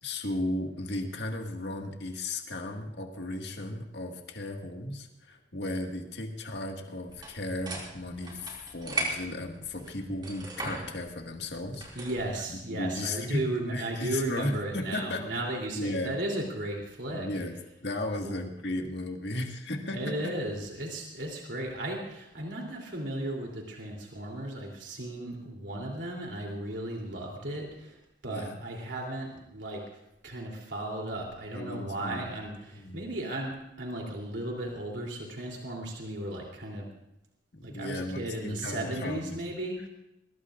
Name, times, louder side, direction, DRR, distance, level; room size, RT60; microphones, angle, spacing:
voice 1, 0.0-12.1 12.5-13.4 13.7-15.3 15.7-16.2 17.1-20.3 28.3-28.6 31.5-32.3 32.7-33.0 37.5-39.4, left 1 dB, 70° left, 2 dB, 1.9 m, -35 dB
sound 1, 7.1-12.3, right 2 dB, 25° right, 4.0 m, -38 dB
voice 2, 11.9-17.3 18.2-18.3 19.9-29.8 30.2-36.9 37.6-39.9, right 1 dB, 80° right, -1 dB, 3.2 m, -35 dB
22.0 x 21.0 x 2.5 m, 0.86 s
head